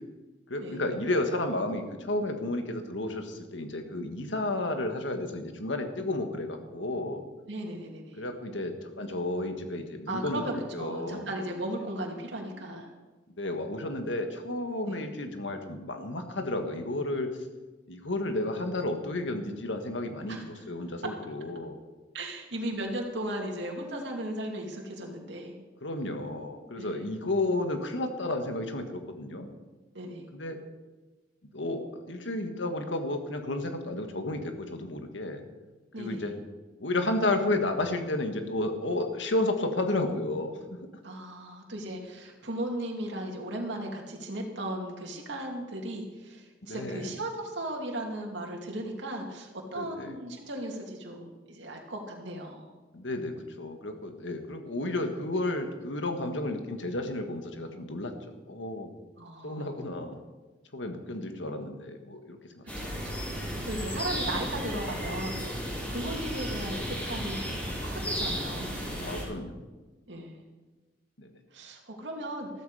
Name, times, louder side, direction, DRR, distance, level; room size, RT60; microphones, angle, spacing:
voice 1, 0.5-7.2 8.2-11.3 13.4-17.3 17.9-21.8 25.8-29.5 30.3-30.6 31.5-35.4 36.0-36.3 36.8-40.9 46.6-47.1 49.8-50.2 52.9-58.9 59.4-60.2 60.7-62.6 69.0-69.5 71.2-71.3, left 2 dB, 75° left, 6 dB, 1.7 m, -32 dB
voice 2, 7.5-8.2 10.1-12.9 14.8-15.0 20.3-20.4 22.1-25.5 26.8-27.1 29.9-30.3 35.9-36.3 41.0-52.7 59.2-59.7 62.7-63.4 63.6-68.8 70.1-70.4 71.5-72.5, right 1 dB, 70° right, 0 dB, 2.6 m, -36 dB
sound 1, 62.7-69.2, equal, 10° left, 4.6 m, -34 dB
14.5 x 13.5 x 5.0 m, 1.2 s
head